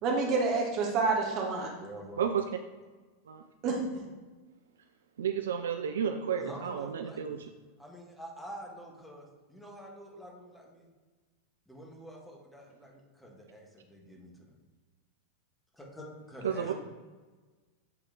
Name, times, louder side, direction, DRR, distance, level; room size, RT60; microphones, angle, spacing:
voice 1, 0.0-1.7 3.6-3.8 16.6-16.7, right 4 dB, 40° right, 0 dB, 1.3 m, -28 dB
voice 2, 1.7-2.2 6.3-7.4 7.8-10.9 11.7-14.6 15.7-16.7, equal, 5° left, -1 dB, 1.5 m, -47 dB
voice 3, 5.2-7.5 16.4-16.7, right 7 dB, 65° right, 6 dB, 0.3 m, -31 dB
7.4 x 3.6 x 3.7 m, 1.3 s
figure-of-eight pair, 90°, 0 cm